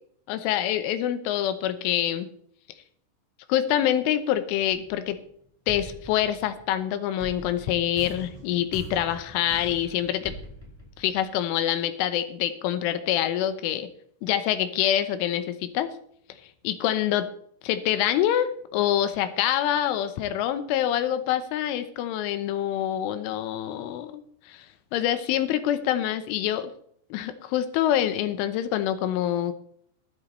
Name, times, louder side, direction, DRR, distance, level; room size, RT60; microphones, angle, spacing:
voice 1, 0.3-2.3 3.5-5.2 5.7-10.3 11.0-13.9 14.2-15.9 16.7-17.3 17.6-24.7 24.9-26.7 27.1-29.5, left 11 dB, 90° left, 10 dB, 3.4 m, -26 dB
sound 1, 4.7-5.3 5.7-11.5, equal, 10° left, 3.8 m, -42 dB
22.5 x 8.9 x 3.2 m, 0.64 s
omnidirectional pair, 5.5 m